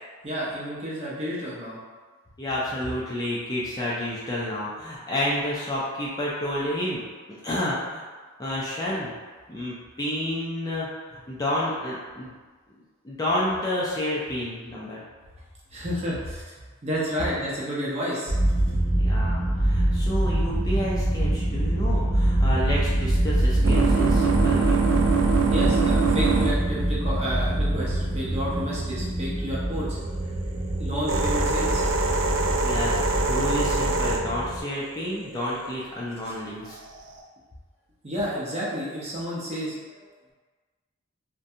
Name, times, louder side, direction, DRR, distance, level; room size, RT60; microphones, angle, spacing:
voice 1, 0.2-1.8 15.7-16.5 16.8-18.3 25.5-30.0 30.7-31.8 36.3-36.4 38.0-40.3, equal, 30° right, -7 dB, 0.6 m, -31 dB
voice 2, 2.4-7.0 7.3-8.0 8.4-9.1 9.5-10.9 11.3-12.3 13.0-15.0 19.0-24.8 32.6-36.8, left 1 dB, 20° left, -7 dB, 0.4 m, -30 dB
sound 1, 18.3-34.6, right 1 dB, 55° left, 0.7 m, -25 dB
sound 2, 22.9-29.1 29.9-35.7 36.7-37.2, right 4 dB, 70° right, 0.3 m, -25 dB
2.5 x 2.2 x 2.6 m, 1.4 s
head